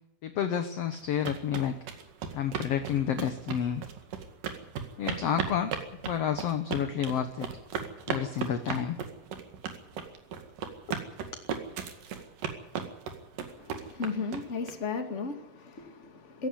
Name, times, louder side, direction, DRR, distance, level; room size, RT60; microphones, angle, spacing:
voice 1, 0.2-1.8 2.3-3.8 5.0-5.7 6.0-7.5 8.1-9.0 10.9-11.0, left 9 dB, 65° left, 9 dB, 1.6 m, -30 dB
sound 1, 0.9-14.7, right 7 dB, 65° right, 3.5 m, -36 dB
voice 2, 13.6-16.5, left 4 dB, 25° left, 6 dB, 2.0 m, -35 dB
16.5 x 16.5 x 9.7 m, 0.73 s
omnidirectional pair, 4.2 m